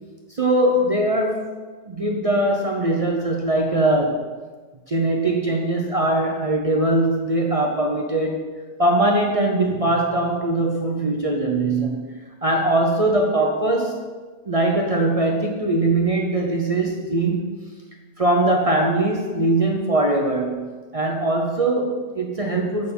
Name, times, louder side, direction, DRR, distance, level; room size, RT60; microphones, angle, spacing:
voice 1, 0.3-1.5 1.9-4.2 4.9-8.4 8.8-14.0 14.4-17.5 18.2-22.9, right 2 dB, 55° right, 1 dB, 0.4 m, -21 dB
6.8 x 6.6 x 5.3 m, 1.4 s
omnidirectional pair, 1.7 m